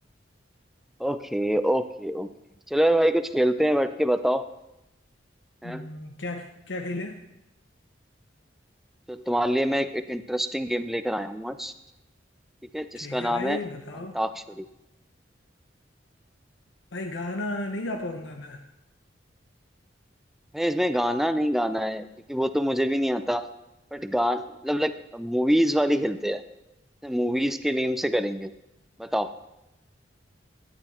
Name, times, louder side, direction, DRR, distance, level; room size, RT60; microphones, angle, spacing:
voice 1, 1.0-2.3 2.7-4.4 5.6-5.9 9.1-11.7 12.7-13.6 14.1-14.7 20.5-23.5 23.9-26.4 27.0-28.5 29.0-29.3, equal, ahead, 9 dB, 0.4 m, -25 dB
voice 2, 5.6-7.2 12.9-14.2 16.9-18.6, left 2 dB, 80° left, 5 dB, 0.9 m, -34 dB
16.0 x 9.9 x 4.3 m, 0.93 s
head